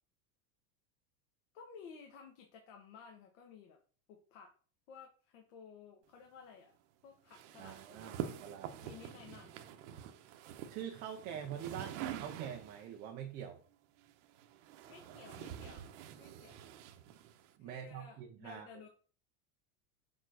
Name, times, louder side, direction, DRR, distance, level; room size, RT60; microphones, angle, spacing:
voice 1, 1.5-3.8 4.1-4.5 4.9-6.7 7.0-8.3 8.8-9.5 14.9-16.6 17.6-18.9, left 6 dB, 55° left, 2 dB, 1.5 m, -55 dB
sound 1, 7.3-12.9 14.0-17.5, right 10 dB, 50° right, 0.9 m, -46 dB
voice 2, 7.6-8.7 10.7-13.6 17.6-18.8, right 9 dB, 20° right, 3 dB, 0.5 m, -45 dB
6.9 x 3.7 x 6.2 m, 0.40 s
supercardioid pair, 175°, 44 cm